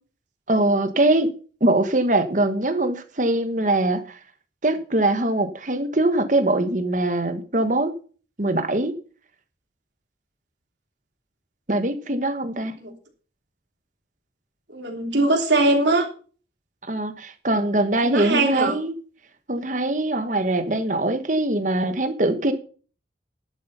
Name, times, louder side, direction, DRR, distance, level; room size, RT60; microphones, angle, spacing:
voice 1, 0.5-1.3 1.6-4.2 4.6-7.9 8.4-8.9 11.7-12.7 16.8-18.9 19.5-22.5, right 2 dB, 45° right, 1.4 m, -22 dB
voice 2, 14.7-16.1 18.0-18.7, right 2 dB, 85° right, 3.2 m, -21 dB
11.5 x 8.1 x 5.6 m
head